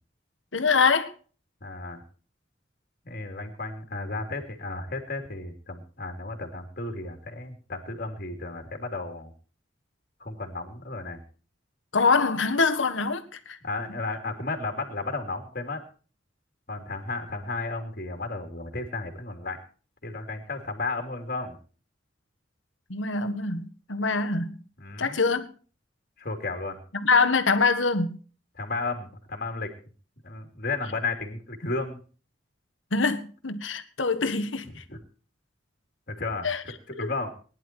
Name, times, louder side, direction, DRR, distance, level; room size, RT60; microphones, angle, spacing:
voice 1, 0.5-1.1 11.9-13.6 22.9-24.6 25.0-25.5 26.9-28.2 32.9-34.8 36.4-36.6 37.0-37.1, left 4 dB, 90° left, 1.6 m, -24 dB
voice 2, 1.6-2.0 3.0-9.3 10.2-11.2 13.6-15.8 16.7-19.6 20.0-21.6 24.8-25.2 26.2-26.8 28.6-29.7 30.2-32.0 34.9-35.0 36.1-37.3, left 3 dB, 50° left, 3.0 m, -33 dB
19.0 x 11.0 x 4.5 m
head